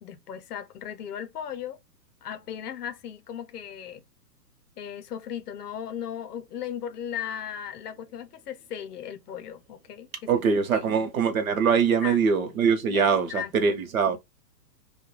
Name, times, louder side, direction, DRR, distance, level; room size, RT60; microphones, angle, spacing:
voice 1, 0.0-1.8 2.2-4.0 4.8-10.4 10.7-11.1 11.8-12.6 12.9-14.2, left 9 dB, 70° left, 0.6 m, -37 dB
voice 2, 10.3-14.2, right 6 dB, 55° right, 0.7 m, -23 dB
2.2 x 2.2 x 2.9 m
hypercardioid pair, 170°, 50 cm